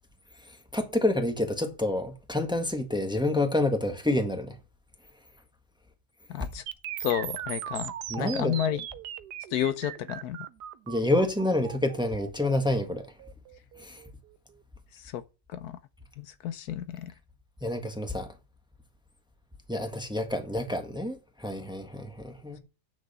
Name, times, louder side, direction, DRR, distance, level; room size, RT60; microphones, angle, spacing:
voice 1, 0.5-4.6 8.1-8.5 10.9-13.1 13.8-14.0 17.6-18.3 19.7-22.6, left 1 dB, 5° right, 1.3 m, -28 dB
voice 2, 6.3-6.6 7.0-8.8 9.5-10.4 15.0-15.2 15.5-15.8 16.2-17.1, left 10 dB, 75° left, 1.2 m, -31 dB
sound 1, 6.7-14.6, right 11 dB, 85° right, 1.3 m, -39 dB
8.5 x 6.3 x 6.8 m
omnidirectional pair, 1.7 m